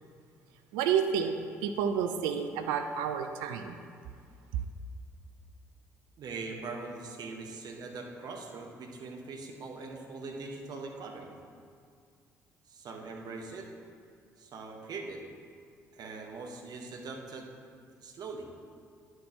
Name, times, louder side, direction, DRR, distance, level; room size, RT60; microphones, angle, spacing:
voice 1, 0.7-1.3 1.6-3.8, right 7 dB, 70° right, 7 dB, 0.4 m, -30 dB
voice 2, 6.2-11.3 12.7-13.7 14.4-15.2 15.9-17.5 18.0-18.5, right 3 dB, 55° right, 2 dB, 1.1 m, -42 dB
10.0 x 7.9 x 2.8 m, 2.2 s
hypercardioid pair, 50°, 8 cm